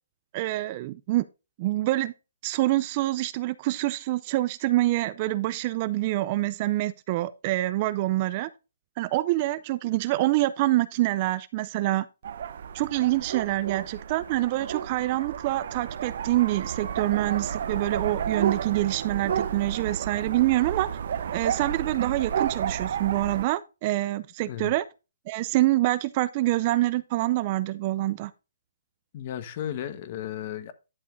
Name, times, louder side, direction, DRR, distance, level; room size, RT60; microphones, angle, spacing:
voice 1, 0.3-1.2 1.6-2.1 2.4-8.5 9.0-12.1 12.7-20.9 21.3-24.8 25.3-28.3, right 17 dB, 30° right, 0.4 m, -26 dB
sound 1, 12.2-23.5, right 8 dB, 50° right, 0.8 m, -32 dB
voice 2, 29.1-30.7, left 10 dB, 35° left, 1.1 m, -34 dB
11.0 x 7.0 x 2.5 m
hypercardioid pair, 165°, 0 cm